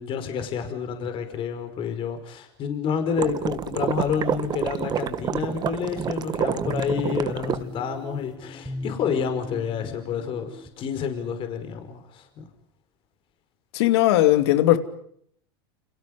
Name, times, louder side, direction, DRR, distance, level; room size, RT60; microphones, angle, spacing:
voice 1, 0.0-12.5, left 7 dB, 40° left, 5.1 m, -29 dB
sound 1, 3.2-7.6, right 9 dB, 30° right, 1.5 m, -28 dB
sound 2, 6.6-10.7, left 2 dB, 5° right, 4.2 m, -36 dB
voice 2, 13.7-14.8, left 15 dB, 70° left, 2.8 m, -18 dB
30.0 x 28.5 x 5.5 m
supercardioid pair, 125°, 14 cm